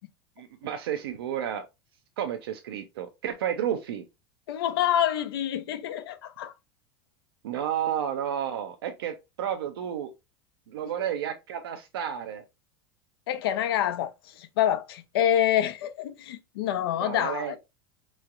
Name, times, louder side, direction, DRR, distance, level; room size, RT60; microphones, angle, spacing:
voice 1, 0.4-1.7 2.2-4.0 7.4-10.1 10.7-12.4 17.0-17.6, right 9 dB, 85° right, 0.5 m, -31 dB
voice 2, 4.5-6.5 13.3-17.6, left 11 dB, 85° left, 0.6 m, -27 dB
4.4 x 3.1 x 2.4 m
supercardioid pair, 115°, 12 cm